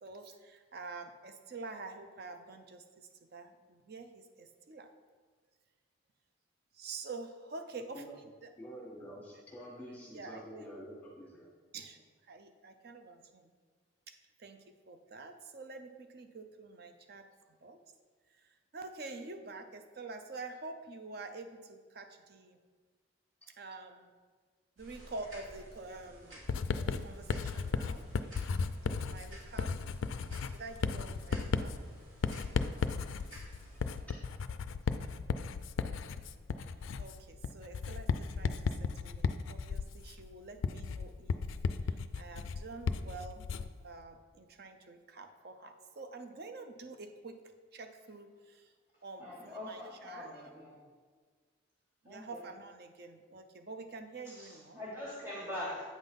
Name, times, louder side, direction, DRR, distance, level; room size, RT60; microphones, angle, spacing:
voice 1, 0.0-4.9 6.7-8.5 10.1-10.7 11.7-12.0 12.3-13.5 14.1-14.2 14.4-14.6 14.9-17.3 17.6-17.8 18.4-18.5 18.7-22.6 23.6-24.1 24.8-26.4 26.7-28.1 28.8-29.7 30.5-31.7 37.0-41.4 41.8-43.5 43.8-47.3 47.7-48.7 49.0-50.5 52.0-54.8, right 3 dB, 50° right, 0.6 m, -47 dB
voice 2, 7.7-8.1 8.6-11.5 32.6-32.7 35.0-35.1, equal, 5° left, 1.4 m, -48 dB
sound 1, 24.8-34.0, equal, 70° right, 2.4 m, -53 dB
Writing, 26.5-43.8, left 5 dB, 70° left, 0.3 m, -35 dB
voice 3, 49.2-50.7 52.0-52.2 54.8-55.8, left 1 dB, 15° right, 1.3 m, -42 dB
8.3 x 3.9 x 5.2 m
head